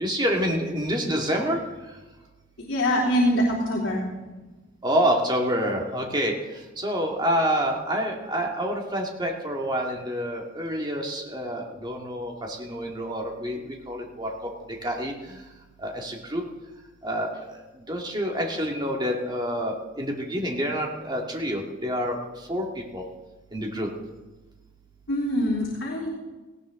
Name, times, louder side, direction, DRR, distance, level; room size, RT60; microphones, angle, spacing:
voice 1, 0.0-1.6 4.8-6.4 6.8-14.3 14.8-15.4 15.8-16.4 17.0-22.2 22.5-23.0 23.5-23.9, equal, 20° right, 0 dB, 2.2 m, -27 dB
voice 2, 2.7-4.0 25.1-26.1, equal, 65° left, -5 dB, 3.3 m, -24 dB
18.5 x 16.5 x 3.8 m, 1.2 s
head